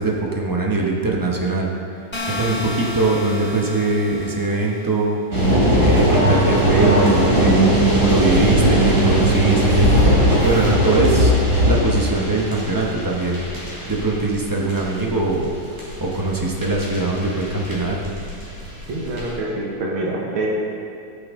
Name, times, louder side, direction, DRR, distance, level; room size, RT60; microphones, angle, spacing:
voice 1, 0.0-1.7 2.2-5.2 5.8-9.9 10.4-11.4 11.6-13.4 13.9-15.5 16.0-18.2, right 2 dB, 15° right, -2 dB, 0.7 m, -22 dB
sound 1, 2.1-5.0, left 2 dB, 30° left, 0.5 m, -31 dB
sound 2, 5.3-19.3, right 1 dB, 40° right, 3.5 m, -18 dB
voice 2, 18.9-20.5, right 2 dB, 80° right, -3 dB, 2.2 m, -26 dB
14.0 x 8.9 x 3.8 m, 2.7 s
omnidirectional pair, 2.2 m